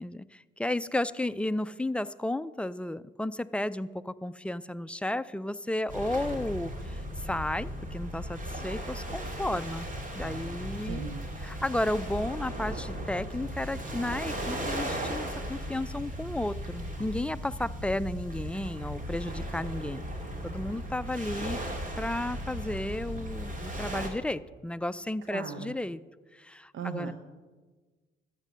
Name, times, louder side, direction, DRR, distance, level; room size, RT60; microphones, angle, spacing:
voice 1, 0.0-9.9 10.2-11.0 11.4-20.0 20.4-21.6 22.0-26.0 26.3-27.1, left 1 dB, 5° left, 14 dB, 0.3 m, -33 dB
sound 1, 5.9-24.1, equal, 40° right, 2.4 m, -37 dB
voice 2, 10.8-11.2 25.3-25.7 26.7-27.1, right 7 dB, 75° right, 6 dB, 0.9 m, -37 dB
12.5 x 7.4 x 6.3 m, 1.4 s
cardioid pair, 90°, 20 cm